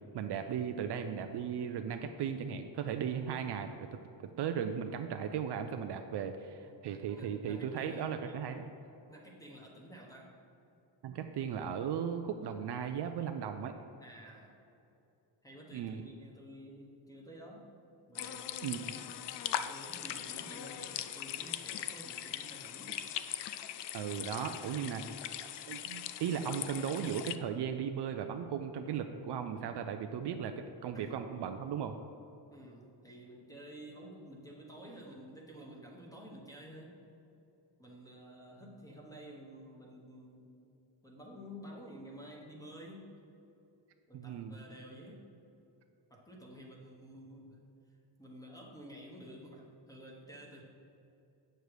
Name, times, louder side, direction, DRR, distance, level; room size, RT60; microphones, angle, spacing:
voice 1, 0.1-3.9 4.4-8.7 11.0-13.7 15.7-16.0 18.6-18.8 23.9-25.0 25.7-32.0 44.1-44.6, right 8 dB, 55° right, 6 dB, 0.5 m, -36 dB
voice 2, 7.1-8.4 9.1-10.4 14.0-14.5 15.4-17.7 18.1-19.1 19.5-23.0 30.9-31.1 32.5-37.0 37.8-40.5 41.0-43.2 44.1-45.3 46.1-47.6 48.2-50.6, equal, 5° left, -2 dB, 1.2 m, -51 dB
sound 1, 18.2-27.4, left 11 dB, 60° left, 0.5 m, -40 dB
9.2 x 6.7 x 4.8 m, 2.8 s
cardioid pair, 170°, 48 cm